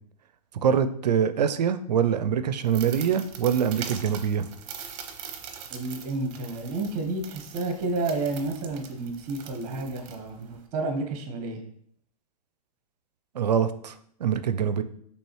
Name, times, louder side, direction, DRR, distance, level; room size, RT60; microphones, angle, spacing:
voice 1, 0.6-4.5 13.3-13.9 14.2-14.8, right 8 dB, 85° right, 12 dB, 0.4 m, -24 dB
sound 1, 2.6-10.7, right 7 dB, 55° right, 0.7 m, -42 dB
voice 2, 5.7-11.6, right 2 dB, 40° right, 4 dB, 1.1 m, -31 dB
5.2 x 3.3 x 3.1 m, 0.67 s
hypercardioid pair, 115°, 20 cm